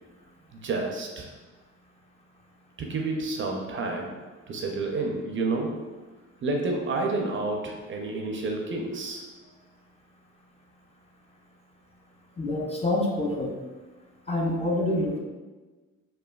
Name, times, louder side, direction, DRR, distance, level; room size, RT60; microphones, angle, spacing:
voice 1, 0.5-1.3 2.8-4.1 4.5-5.8 6.4-9.2, right 3 dB, 40° right, 2 dB, 0.4 m, -29 dB
voice 2, 12.4-13.6 14.3-15.2, left 1 dB, 20° left, -2 dB, 0.4 m, -26 dB
3.0 x 2.2 x 2.2 m, 1.3 s
cardioid pair, 90°, 30 cm